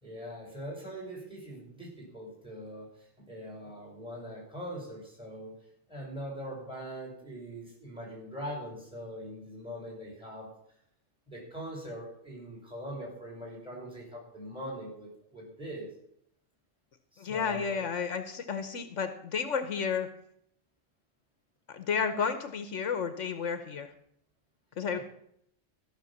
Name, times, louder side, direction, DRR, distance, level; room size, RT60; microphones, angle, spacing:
voice 1, 0.0-2.9 3.2-5.6 5.9-10.5 11.3-15.9 17.1-17.8, equal, 5° right, -1 dB, 5.1 m, -42 dB
voice 2, 17.2-20.1 21.7-23.9 24.8-25.0, left 6 dB, 75° left, 10 dB, 1.3 m, -32 dB
14.0 x 6.6 x 7.1 m, 0.70 s
omnidirectional pair, 1.3 m